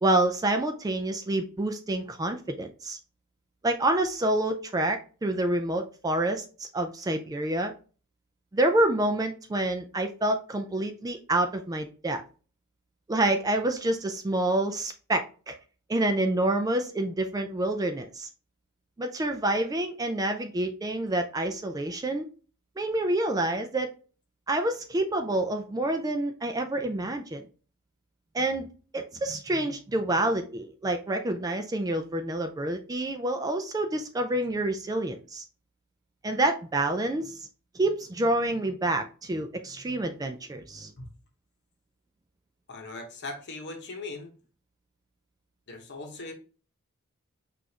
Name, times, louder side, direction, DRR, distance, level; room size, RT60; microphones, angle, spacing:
voice 1, 0.0-3.0 3.6-7.7 8.5-12.2 13.1-15.6 15.9-18.3 19.0-22.3 22.8-23.9 24.5-27.4 28.3-28.7 28.9-35.4 36.2-37.5 37.7-40.9, right 1 dB, 15° right, 6 dB, 0.3 m, -28 dB
voice 2, 42.7-44.3 45.7-46.3, left 3 dB, 55° left, 3 dB, 1.0 m, -39 dB
6.0 x 2.5 x 2.8 m, 0.37 s
head